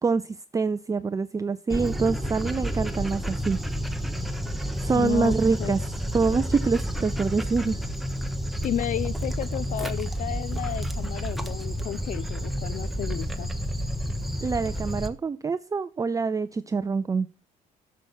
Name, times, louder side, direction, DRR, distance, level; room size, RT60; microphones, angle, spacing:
voice 1, 0.0-3.6 4.8-5.8 6.1-7.8 14.4-17.3, right 4 dB, 20° right, 0.5 m, -25 dB
Dog, 1.7-15.1, equal, ahead, 1.4 m, -30 dB
voice 2, 4.9-5.7 8.6-13.5, left 12 dB, 50° left, 0.4 m, -32 dB
10.5 x 7.1 x 6.3 m
cardioid pair, 110°, 17 cm